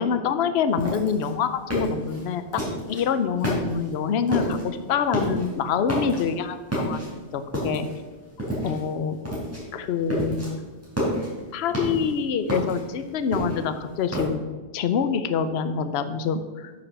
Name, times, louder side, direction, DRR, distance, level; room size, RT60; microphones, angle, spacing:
voice 1, 0.0-2.6 2.9-7.0 7.3-7.9 8.6-9.2 9.7-10.6 11.5-14.4 14.7-16.7, left 6 dB, 65° left, 10 dB, 0.9 m, -26 dB
sound 1, 0.8-3.0 3.4-4.0 4.3-4.7 5.0-5.5 5.8-6.4 6.7-8.0 8.4-8.9 9.3-9.6 9.9-10.5 10.8-12.1 12.5-14.2, equal, 10° right, 3.5 m, -29 dB
9.4 x 5.9 x 6.1 m, 1.3 s
omnidirectional pair, 1.2 m